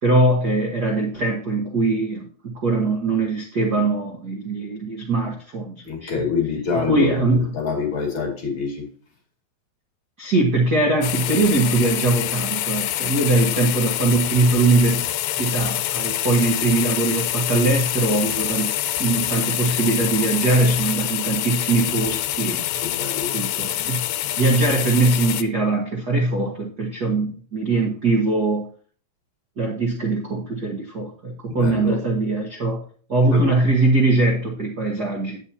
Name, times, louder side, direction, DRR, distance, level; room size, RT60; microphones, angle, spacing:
voice 1, 0.0-6.2 6.7-7.5 10.2-22.6 23.3-24.0 24.4-28.7 29.6-32.8 33.1-35.4, right 2 dB, 60° right, 0 dB, 1.0 m, -21 dB
voice 2, 5.8-8.8 22.8-23.4 31.5-32.0 33.2-33.5, left 5 dB, 40° left, -1 dB, 2.7 m, -26 dB
sound 1, 11.0-25.4, left 13 dB, 85° left, 2.3 m, -26 dB
9.2 x 8.7 x 2.8 m, 0.43 s
omnidirectional pair, 4.2 m